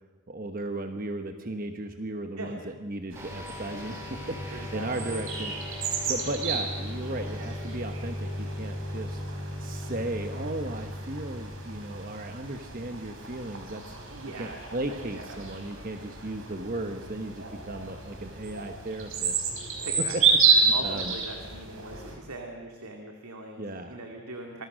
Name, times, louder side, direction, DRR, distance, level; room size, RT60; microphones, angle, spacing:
voice 1, 0.3-9.2 9.6-13.8 14.4-19.5 20.0-21.2 23.6-24.0, right 1 dB, 40° right, 6 dB, 1.1 m, -36 dB
sound 1, 3.1-22.2, right 5 dB, 65° right, 4.8 m, -31 dB
sound 2, 3.2-12.9, left 1 dB, 10° right, 3.5 m, -38 dB
voice 2, 4.5-5.2 14.1-14.6 14.9-15.4 19.8-20.2 20.7-24.7, right 2 dB, 85° right, 2 dB, 2.3 m, -41 dB
26.5 x 21.5 x 6.3 m, 1.4 s
head